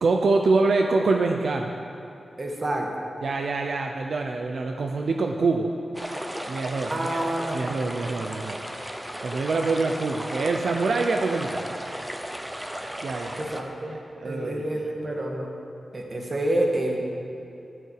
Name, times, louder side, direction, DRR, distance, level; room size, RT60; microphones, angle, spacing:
voice 1, 0.0-1.7 3.2-5.7 6.5-7.2 7.5-8.6 9.2-11.8 13.0-13.5 14.2-14.6, right 3 dB, 70° right, 3 dB, 0.7 m, -25 dB
voice 2, 2.4-2.9 6.9-7.6 13.4-14.0 14.2-15.5 15.9-17.0, right 1 dB, 35° right, 0 dB, 1.7 m, -28 dB
sound 1, 5.9-13.6, equal, 10° right, 0.8 m, -35 dB
14.0 x 11.0 x 4.8 m, 2.8 s
wide cardioid pair, 155°, 0 cm